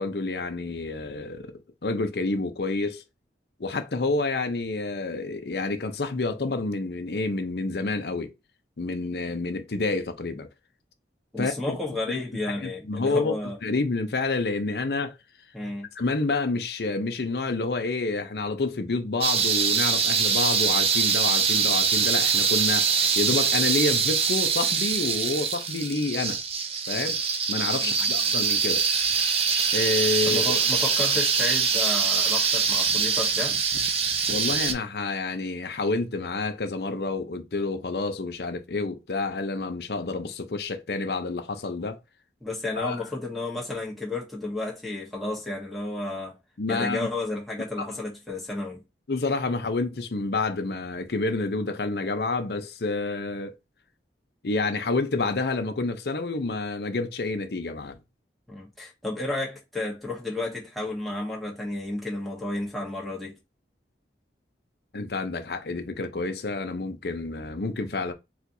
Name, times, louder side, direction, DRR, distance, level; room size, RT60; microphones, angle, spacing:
voice 1, 0.0-3.0 3.6-8.3 8.8-10.5 11.4-11.8 12.1-12.2 12.6-13.3 13.6-15.1 16.0-26.4 26.9-27.2 27.5-28.9 29.7-30.4 34.3-42.0 42.8-43.0 46.6-47.1 47.8-47.9 49.1-53.6 54.4-58.0 64.9-68.1, left 3 dB, 60° left, 0.6 m, -28 dB
voice 2, 11.3-13.6 15.5-15.9 27.8-28.3 30.2-33.6 42.4-46.3 46.7-48.8 58.5-63.3, left 2 dB, ahead, 1.1 m, -32 dB
sound 1, 19.2-34.7, right 6 dB, 35° right, 0.4 m, -24 dB
4.3 x 2.3 x 2.7 m
head